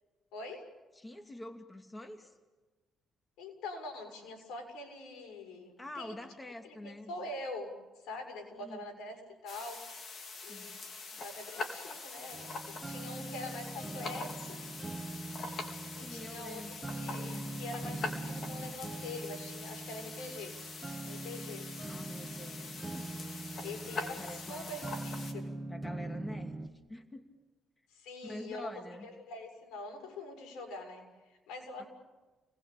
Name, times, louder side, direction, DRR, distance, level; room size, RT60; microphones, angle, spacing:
voice 1, 0.3-0.6 3.4-6.2 6.6-7.7 8.0-9.8 10.4-10.7 11.2-14.6 16.0-20.6 21.1-21.7 23.6-25.5 27.9-31.9, left 2 dB, 90° left, 3 dB, 6.8 m, -44 dB
voice 2, 1.0-2.3 5.8-7.1 8.6-8.9 10.5-10.8 16.0-16.8 17.1-17.6 21.9-24.8 25.7-27.2 28.2-29.1 31.8-31.9, left 1 dB, 20° left, 6 dB, 2.7 m, -47 dB
sound 1, 9.5-25.3, left 3 dB, 50° left, 4.4 m, -44 dB
sound 2, 12.3-26.7, right 2 dB, 15° right, 2.0 m, -42 dB
30.0 x 20.5 x 8.7 m, 1.3 s
cardioid pair, 90°, 0 cm